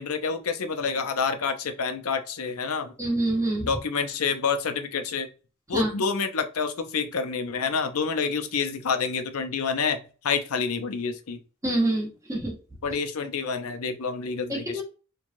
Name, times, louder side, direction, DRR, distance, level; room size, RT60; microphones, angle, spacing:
voice 1, 0.0-2.9 3.7-5.3 5.7-11.4 12.8-14.8, left 5 dB, 80° left, 7 dB, 0.5 m, -28 dB
voice 2, 3.0-3.7 5.7-5.9 11.6-12.6 14.5-14.8, right 1 dB, 15° right, -1 dB, 0.9 m, -26 dB
3.1 x 2.2 x 2.6 m, 0.35 s
head